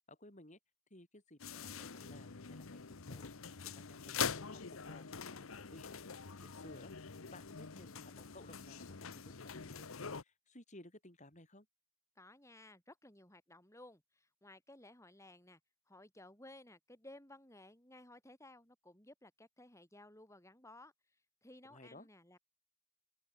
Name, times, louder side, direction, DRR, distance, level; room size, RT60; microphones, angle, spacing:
voice 1, 0.1-0.6 0.9-3.3 3.6-5.1 5.4-11.7 21.7-22.1, left 1 dB, 35° left, 6.2 m, -58 dB
sound 1, 1.4-10.2, left 6 dB, 80° left, 1.1 m, -44 dB
voice 2, 12.2-15.6 15.9-20.9 21.4-22.4, left 1 dB, 15° left, 5.5 m, -57 dB
open air
head